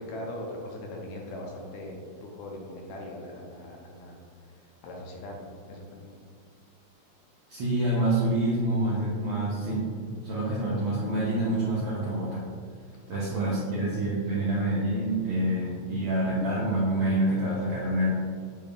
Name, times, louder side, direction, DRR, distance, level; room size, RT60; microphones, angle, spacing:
voice 1, 0.0-4.2 4.4-6.2 13.1-13.8 14.2-14.4, left 1 dB, 80° left, 0 dB, 1.8 m, -41 dB
voice 2, 7.5-9.9 10.2-12.4 13.1-18.1, right 1 dB, 80° right, -7 dB, 1.3 m, -27 dB
6.6 x 3.5 x 2.3 m, 2.1 s
omnidirectional pair, 3.4 m